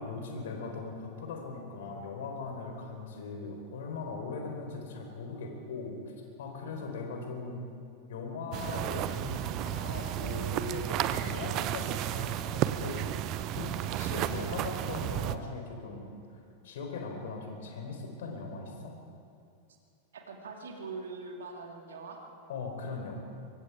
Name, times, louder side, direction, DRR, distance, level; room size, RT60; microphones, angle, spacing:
voice 1, 0.0-6.0 6.4-7.6 8.1-13.1 13.5-16.0 16.3-18.9 22.5-23.2, left 4 dB, 60° left, 2 dB, 4.2 m, -39 dB
sound 1, 8.5-15.4, right 12 dB, 40° right, 0.8 m, -33 dB
voice 2, 20.1-22.2, right 4 dB, 65° right, 2 dB, 2.7 m, -43 dB
24.5 x 23.5 x 4.9 m, 2.5 s
figure-of-eight pair, 90°, 0 cm